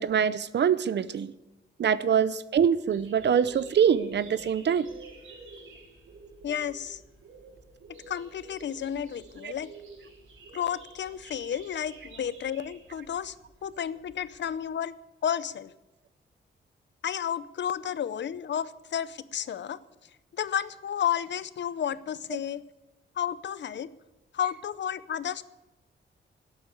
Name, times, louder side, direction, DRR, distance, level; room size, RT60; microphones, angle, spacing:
voice 1, 0.0-1.3 1.8-4.9 9.4-9.5, right 8 dB, 60° right, 16 dB, 0.7 m, -24 dB
sound 1, 2.9-14.7, right 3 dB, 80° right, 4.4 m, -50 dB
voice 2, 6.4-7.0 8.1-9.7 10.5-13.4 13.6-15.0 15.2-15.7 17.0-19.8 20.3-22.6 23.2-23.9 24.3-25.4, left 9 dB, 65° left, 17 dB, 0.6 m, -32 dB
12.0 x 8.8 x 9.8 m, 1.0 s
wide cardioid pair, 140°, 20 cm